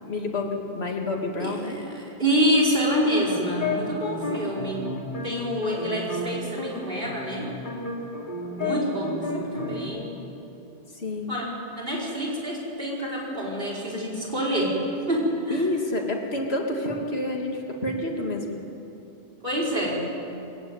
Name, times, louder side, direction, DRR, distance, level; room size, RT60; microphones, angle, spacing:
voice 1, 0.0-1.8 11.0-11.3 15.5-18.5, left 2 dB, 80° left, 1 dB, 2.5 m, -29 dB
voice 2, 1.4-4.8 5.2-7.5 8.6-10.1 11.3-11.5 11.8-14.7 15.1-15.6 19.4-20.0, equal, 60° right, -3 dB, 5.1 m, -27 dB
sound 1, 3.0-6.3 6.6-9.8, left 2 dB, 50° left, 3.5 m, -32 dB
21.5 x 15.5 x 9.5 m, 2.8 s
omnidirectional pair, 1.1 m